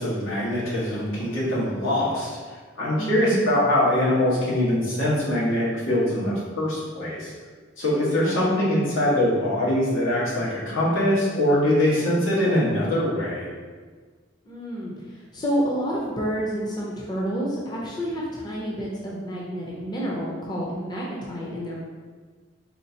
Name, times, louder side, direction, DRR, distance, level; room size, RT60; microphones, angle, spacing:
voice 1, 0.0-2.4 2.8-7.3 7.8-13.5, left 1 dB, 85° left, -7 dB, 1.5 m, -23 dB
voice 2, 3.0-3.5 8.2-8.5 14.4-21.8, equal, 20° left, -5 dB, 0.6 m, -29 dB
4.4 x 3.4 x 2.8 m, 1.5 s
head